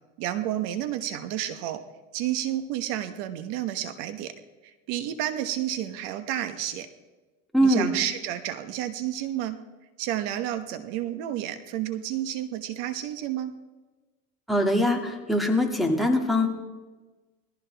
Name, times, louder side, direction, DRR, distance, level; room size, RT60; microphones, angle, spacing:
voice 1, 0.2-1.8 2.1-4.3 4.9-6.9 7.6-9.6 10.0-13.5, right 12 dB, 65° right, 10 dB, 1.2 m, -30 dB
voice 2, 7.5-7.9 14.5-16.5, left 1 dB, ahead, 3 dB, 2.3 m, -22 dB
20.5 x 15.0 x 3.5 m, 1.2 s
supercardioid pair, 115°, 37 cm